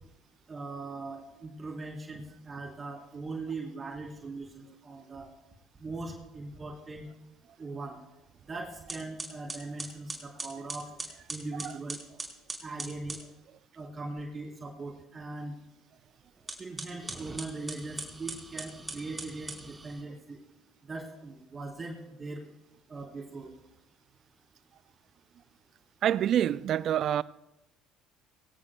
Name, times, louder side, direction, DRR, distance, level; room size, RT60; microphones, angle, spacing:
voice 1, 0.5-5.3 5.8-7.1 7.6-8.0 8.5-10.9 11.3-12.0 12.6-13.2 13.7-15.6 16.6-20.4 20.8-22.4 22.9-23.5, right 3 dB, 30° right, 3.7 m, -40 dB
sound 1, 8.3-8.5 8.9-13.3 16.4-20.0, right 2 dB, 15° right, 4.3 m, -41 dB
voice 2, 26.0-27.2, right 10 dB, 55° right, 0.4 m, -26 dB
23.5 x 17.0 x 2.3 m
hypercardioid pair, 60°, 0 cm